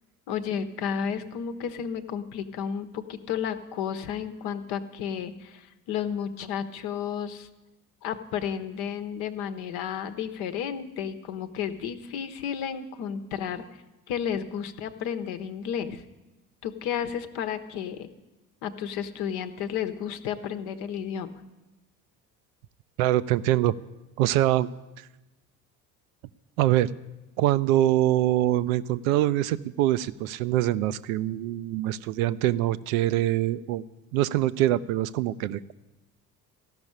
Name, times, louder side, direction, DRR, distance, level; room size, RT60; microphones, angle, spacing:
voice 1, 0.3-7.5 8.0-13.6 14.1-16.0 16.6-18.1 18.6-21.3, left 8 dB, 55° left, 9 dB, 1.0 m, -32 dB
voice 2, 23.0-23.7 24.2-24.7 25.0-25.1 26.6-26.9 27.4-33.8 34.1-35.7, right 14 dB, 60° right, 15 dB, 0.6 m, -24 dB
14.0 x 6.2 x 9.9 m, 1.0 s
figure-of-eight pair, 55°, 47 cm